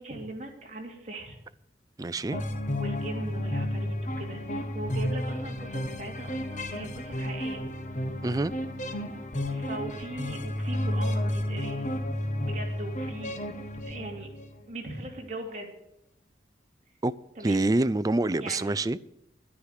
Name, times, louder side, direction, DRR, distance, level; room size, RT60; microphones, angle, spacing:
voice 1, 0.0-1.4 2.7-7.7 9.5-11.9 12.4-13.4 13.8-14.3 14.7-15.7 17.3-17.6 18.4-18.8, right 2 dB, 40° right, 2.8 m, -40 dB
voice 2, 2.0-2.4 8.2-8.5 17.0-17.1 17.4-19.0, right 2 dB, 20° right, 0.4 m, -26 dB
sound 1, 2.3-14.6, left 1 dB, 45° left, 1.3 m, -32 dB
11.0 x 10.0 x 6.6 m
head